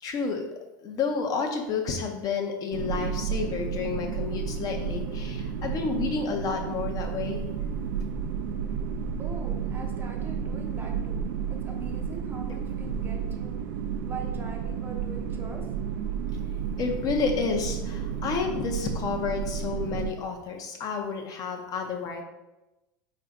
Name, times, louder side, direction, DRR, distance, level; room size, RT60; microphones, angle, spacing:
voice 1, 0.0-0.4 0.8-7.5 16.8-22.2, left 5 dB, 35° left, 3 dB, 0.5 m, -30 dB
sound 1, 2.7-20.1, right 7 dB, 85° right, 0.4 m, -32 dB
voice 2, 9.2-13.6 14.0-15.7 21.8-21.9, right 3 dB, 20° right, 2 dB, 0.5 m, -42 dB
3.2 x 2.5 x 4.0 m, 1.0 s
supercardioid pair, 125°, 10 cm